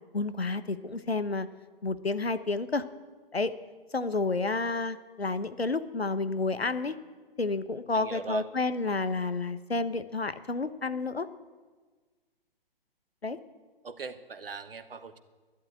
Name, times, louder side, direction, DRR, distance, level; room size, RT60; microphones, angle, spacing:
voice 1, 0.1-1.5 1.8-2.8 3.3-3.5 3.9-7.0 7.4-11.3 13.2-13.4, left 3 dB, 85° left, 12 dB, 1.0 m, -30 dB
voice 2, 7.9-8.4 13.8-15.2, right 5 dB, 65° right, 12 dB, 1.2 m, -39 dB
11.5 x 11.5 x 8.5 m, 1.4 s
figure-of-eight pair, 125°, 30 cm